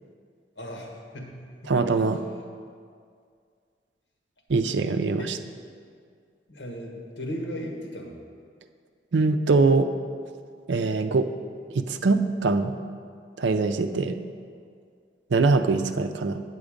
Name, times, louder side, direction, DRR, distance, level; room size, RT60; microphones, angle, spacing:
voice 1, 0.5-1.8 2.1-2.2 5.1-5.3 6.5-8.2, equal, 85° left, 0 dB, 1.5 m, -37 dB
voice 2, 1.7-2.2 4.5-5.2 9.1-9.9 10.7-11.3 11.7-12.7 13.4-14.2 15.3-16.4, right 3 dB, 80° right, 8 dB, 0.5 m, -22 dB
8.3 x 8.0 x 5.1 m, 2.2 s
head